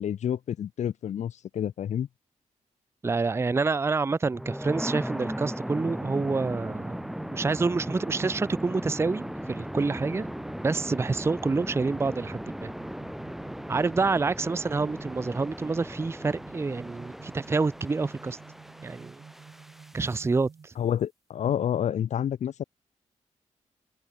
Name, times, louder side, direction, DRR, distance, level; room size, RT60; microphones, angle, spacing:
voice 1, 0.0-2.1 20.8-22.6, left 9 dB, 65° left, 0.5 m, -29 dB
voice 2, 3.0-7.0 7.3-10.3 10.6-12.7 13.7-18.4 18.8-19.2 19.9-20.7, right 4 dB, 20° right, 0.5 m, -27 dB
sound 1, 4.3-20.2, equal, ahead, 1.5 m, -37 dB
sound 2, 10.2-20.7, right 6 dB, 50° right, 7.5 m, -50 dB
open air
wide cardioid pair, 130°, 13 cm